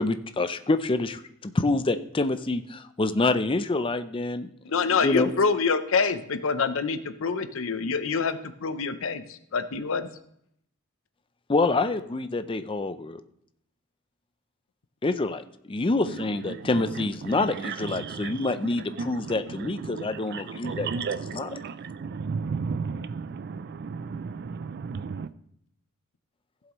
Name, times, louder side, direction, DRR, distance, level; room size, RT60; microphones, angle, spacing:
voice 1, 0.0-4.5 4.9-5.3 11.5-13.2 15.0-15.4 15.7-20.9 21.3-21.5, left 2 dB, 25° left, 0.5 m, -26 dB
voice 2, 4.7-10.1, left 5 dB, 60° left, 0.6 m, -26 dB
voice 3, 16.1-25.3, right 5 dB, 45° right, 0.4 m, -34 dB
15.5 x 7.6 x 3.0 m
head